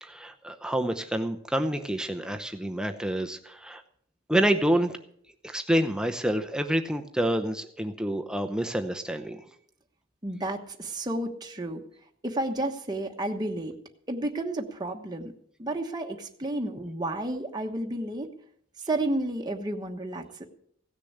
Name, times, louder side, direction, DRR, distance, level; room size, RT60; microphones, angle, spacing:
voice 1, 0.0-3.8 4.3-5.0 5.4-9.4, right 1 dB, 5° right, 6 dB, 0.7 m, -28 dB
voice 2, 10.2-11.8 12.2-13.7 14.1-15.3 15.6-18.3 18.8-20.4, right 1 dB, 20° right, 2 dB, 1.1 m, -31 dB
16.5 x 6.8 x 8.0 m, 0.65 s
head